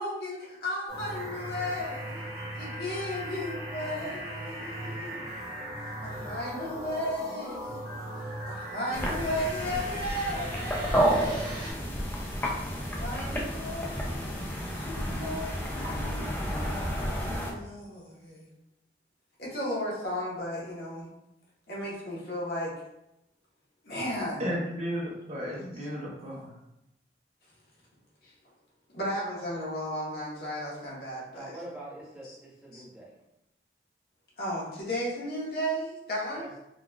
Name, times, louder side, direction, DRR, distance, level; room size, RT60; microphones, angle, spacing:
voice 1, 0.0-5.3 6.0-7.8 8.5-12.3 12.8-14.3 14.7-16.7 17.2-18.5 19.4-21.1 21.7-22.7 23.8-24.5 28.2-28.3 28.9-31.5 32.2-32.4 32.7-32.8 34.4-36.4, left 1 dB, 60° left, -5 dB, 1.0 m, -35 dB
sound 1, 0.9-11.7, right 1 dB, 55° right, 1.4 m, -38 dB
sound 2, 8.9-17.5, equal, 10° left, 0.3 m, -31 dB
voice 2, 24.4-26.6, equal, 40° right, -3 dB, 0.6 m, -34 dB
voice 3, 31.3-33.1 36.3-36.6, right 1 dB, 5° right, -7 dB, 0.8 m, -44 dB
3.7 x 2.3 x 2.2 m, 0.87 s
head